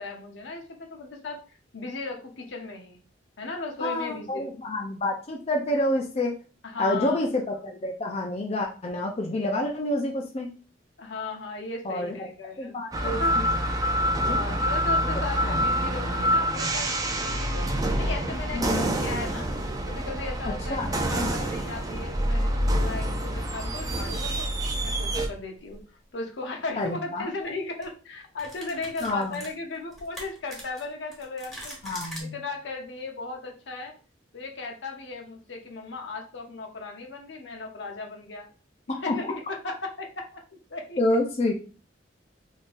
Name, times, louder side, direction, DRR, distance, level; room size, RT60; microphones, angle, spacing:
voice 1, 0.0-3.0 3.4-4.5 6.6-7.2 11.0-12.8 13.0-13.4 14.2-17.0 17.2-17.7 18.0-19.5 19.9-24.5 24.8-25.8 26.1-31.8 32.2-33.9 34.3-38.5 38.9-41.0, left 3 dB, 75° left, 2 dB, 0.8 m, -36 dB
voice 2, 3.8-6.4 6.8-10.5 11.8-12.3 12.6-13.5 14.2-14.5 15.4-15.6 18.5-18.9 20.7-20.9 21.2-21.3 26.8-27.3 29.0-29.4 31.8-32.4 38.9-39.3 41.0-41.5, left 1 dB, 35° left, 1 dB, 0.5 m, -28 dB
sound 1, 12.9-25.3, equal, 20° right, 0.4 m, -27 dB
sound 2, 25.6-25.8 27.3-27.5 27.8-27.9 28.4-32.2, equal, ahead, 1.2 m, -42 dB
3.7 x 2.7 x 2.5 m, 0.36 s
head